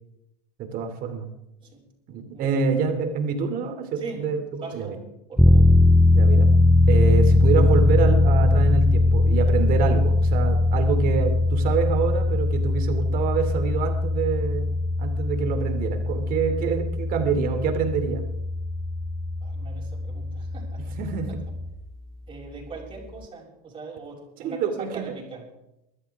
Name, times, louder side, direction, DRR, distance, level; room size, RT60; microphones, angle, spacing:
voice 1, 0.6-1.3 2.1-4.9 6.1-6.5 6.9-14.7 15.0-18.3 20.8-21.3 24.4-25.1, right 6 dB, 45° right, 6 dB, 2.7 m, -26 dB
voice 2, 4.0-5.0 5.3-5.7 19.4-20.9 21.3-21.4 22.3-25.4, right 4 dB, 25° right, -2 dB, 6.5 m, -40 dB
sound 1, 5.4-21.7, left 2 dB, ahead, 0.5 m, -21 dB
22.0 x 13.0 x 3.5 m, 0.86 s
supercardioid pair, 115°, 20 cm